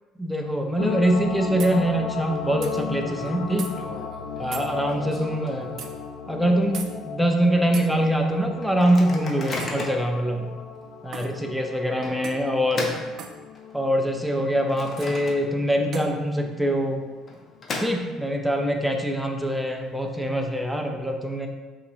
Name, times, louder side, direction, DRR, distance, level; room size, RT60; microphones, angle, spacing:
voice 1, 0.2-3.7 4.4-5.8 6.3-10.5 11.0-12.9 13.7-17.0 17.8-21.5, right 1 dB, ahead, 2 dB, 0.5 m, -24 dB
sound 1, 0.8-16.5 16.9-17.0, left 6 dB, 90° left, 0.4 m, -36 dB
sound 2, 1.6-1.8 2.6-2.8 3.6-3.7 4.5-4.7 5.8-5.9 6.7-6.9 7.7-7.9 9.6-9.8 11.1-11.3 12.2-12.5 13.2-13.4 15.0-15.1 15.9-16.1, right 6 dB, 55° right, 0.4 m, -38 dB
Microwave oven, 1.8-2.4 2.7-2.8 3.1-6.2 6.6-6.7 6.9-7.3 7.8-7.9 8.6-10.1 10.8-10.9 12.0-13.8 14.3-15.8 16.1-16.2 17.0-18.4, left 2 dB, 40° left, 0.7 m, -37 dB
5.6 x 3.1 x 2.7 m, 1.3 s
cardioid pair, 115°, 0 cm